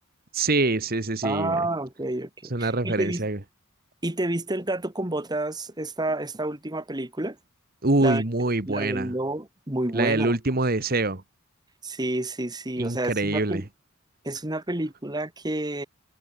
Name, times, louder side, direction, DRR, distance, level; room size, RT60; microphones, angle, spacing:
voice 1, 0.3-1.6 2.5-3.4 7.8-9.1 9.9-11.2 12.8-13.6, right 2 dB, 45° right, 1.6 m, -25 dB
voice 2, 1.2-2.3 2.6-3.2 4.0-7.4 8.0-8.2 8.7-10.4 11.8-13.6 14.2-15.8, right 1 dB, 20° right, 1.8 m, -29 dB
head